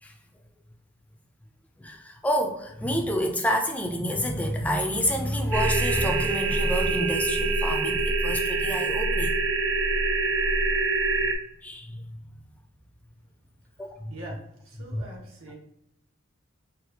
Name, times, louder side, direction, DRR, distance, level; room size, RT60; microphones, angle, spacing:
voice 1, 1.8-9.3 11.6-12.0 13.8-14.1 14.9-15.0, equal, 5° left, 3 dB, 0.3 m, -28 dB
sound 1, 5.5-11.4, right 3 dB, 65° right, 0.5 m, -25 dB
voice 2, 13.9-14.4 14.7-15.5, right 2 dB, 85° right, -2 dB, 1.1 m, -43 dB
4.0 x 2.3 x 2.7 m, 0.80 s
head